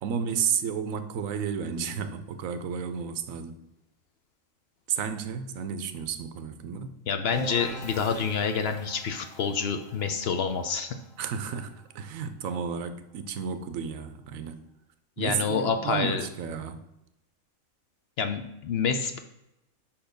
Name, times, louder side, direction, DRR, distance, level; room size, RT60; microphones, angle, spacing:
voice 1, 0.0-3.6 4.9-7.0 11.2-14.6 15.2-16.8, right 7 dB, 85° right, 1.0 m, -32 dB
voice 2, 7.1-10.9 15.2-16.2 18.2-19.2, left 6 dB, 60° left, 0.7 m, -28 dB
sound 1, 7.3-12.9, equal, 90° left, 1.7 m, -43 dB
5.4 x 4.4 x 5.1 m
omnidirectional pair, 1.4 m